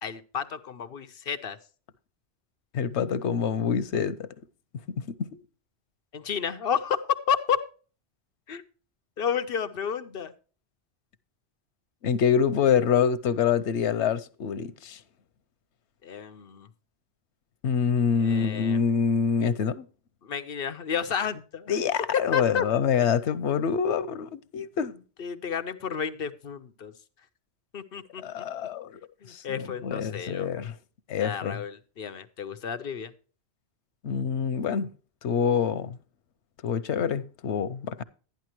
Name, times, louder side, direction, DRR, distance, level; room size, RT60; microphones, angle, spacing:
voice 1, 0.0-1.6 6.1-7.0 7.3-7.6 8.5-8.6 9.2-10.3 16.0-16.7 18.2-18.8 20.2-21.7 22.1-22.6 23.0-23.1 25.2-26.9 27.7-28.4 29.2-30.5 31.2-33.1, left 7 dB, 60° left, 1.0 m, -31 dB
voice 2, 2.7-4.3 4.9-5.4 12.0-15.0 17.6-19.9 21.7-24.9 28.2-28.9 29.3-29.4 29.8-30.7 31.1-31.6 34.0-34.9 35.2-36.0 36.6-38.0, left 7 dB, 85° left, 1.0 m, -26 dB
11.5 x 10.5 x 3.0 m
omnidirectional pair, 1.1 m